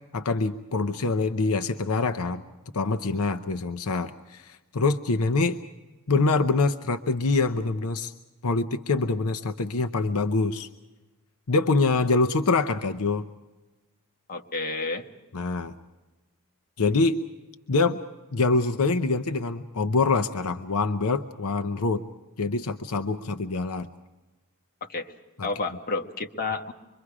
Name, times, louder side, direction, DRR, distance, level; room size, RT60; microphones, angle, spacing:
voice 1, 0.1-2.4 2.7-5.6 6.1-8.1 8.4-10.7 11.5-13.3 15.3-15.7 16.8-17.2 17.7-18.0 18.3-22.0 22.4-23.9 25.4-25.5, left 3 dB, 80° left, 8 dB, 0.8 m, -25 dB
voice 2, 14.3-15.1 24.8-25.1 25.4-26.7, left 3 dB, 40° left, 2 dB, 1.4 m, -30 dB
26.0 x 23.0 x 4.9 m, 1.1 s
head